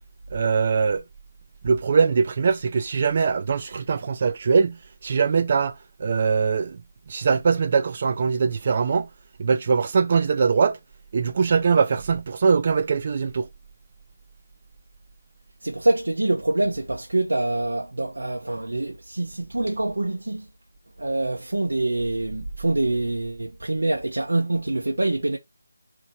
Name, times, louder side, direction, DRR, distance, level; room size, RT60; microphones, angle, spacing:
voice 1, 0.3-1.0 1.6-4.8 5.0-6.8 7.1-9.1 9.4-10.8 11.1-13.5, right 5 dB, 35° right, 0.6 m, -22 dB
voice 2, 15.6-20.4 21.0-25.4, right 2 dB, 90° right, 0.9 m, -25 dB
4.0 x 2.9 x 4.4 m
figure-of-eight pair, 170°, 0 cm